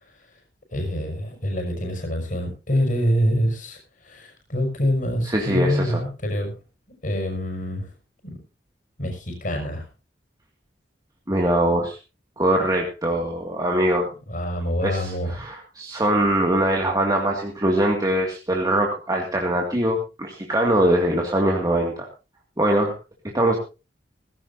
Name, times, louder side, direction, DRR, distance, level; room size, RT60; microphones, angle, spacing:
voice 1, 0.7-6.5 7.0-7.9 8.2-8.4 9.0-9.9 14.3-15.5, equal, 50° left, 3 dB, 5.6 m, -25 dB
voice 2, 5.2-6.0 11.3-12.0 12.4-14.1 14.8-22.1 22.6-22.9 23.3-23.6, right 1 dB, 20° right, 0 dB, 2.2 m, -22 dB
18.0 x 16.0 x 2.7 m, 0.30 s
head